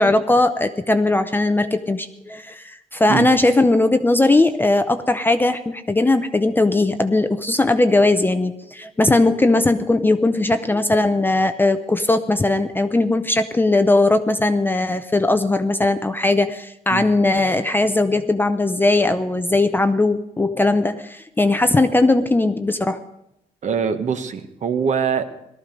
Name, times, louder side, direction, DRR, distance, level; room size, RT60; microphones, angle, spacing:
voice 1, 0.0-23.0, left 2 dB, 10° left, 9 dB, 0.5 m, -19 dB
voice 2, 23.6-25.2, right 6 dB, 45° right, 8 dB, 1.2 m, -23 dB
18.5 x 13.5 x 5.2 m, 0.83 s
wide cardioid pair, 165°, 16 cm